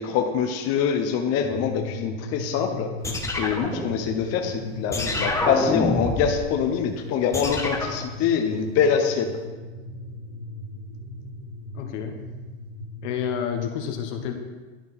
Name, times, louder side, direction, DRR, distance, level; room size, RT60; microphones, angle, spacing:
voice 1, 0.0-2.9 3.4-9.3, left 7 dB, 45° left, 4 dB, 0.8 m, -24 dB
sound 1, 1.4-13.1, left 1 dB, 85° right, 2.2 m, -37 dB
sound 2, 3.0-4.4 4.9-6.4 7.3-8.0, left 2 dB, 10° left, 0.8 m, -27 dB
voice 2, 11.7-12.2 13.0-14.3, left 8 dB, 75° left, 4 dB, 1.2 m, -29 dB
11.0 x 4.6 x 4.2 m, 1.3 s
supercardioid pair, 130°, 35 cm